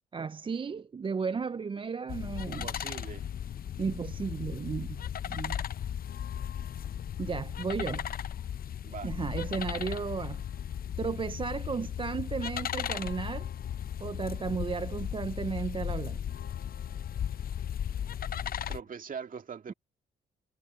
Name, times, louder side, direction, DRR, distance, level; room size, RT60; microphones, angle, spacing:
voice 1, 0.1-2.7 3.8-5.6 7.2-8.1 9.0-10.5 11.0-13.5 14.0-16.2, right 5 dB, 25° right, 0.5 m, -34 dB
sound 1, 2.1-18.8, left 9 dB, 50° left, 0.7 m, -36 dB
voice 2, 2.5-3.3 8.8-9.1 18.7-19.7, right 6 dB, 45° right, 2.1 m, -41 dB
sound 2, 6.0-8.4 8.7-19.2, left 9 dB, 65° left, 4.8 m, -57 dB
cardioid pair, 90°, 20 cm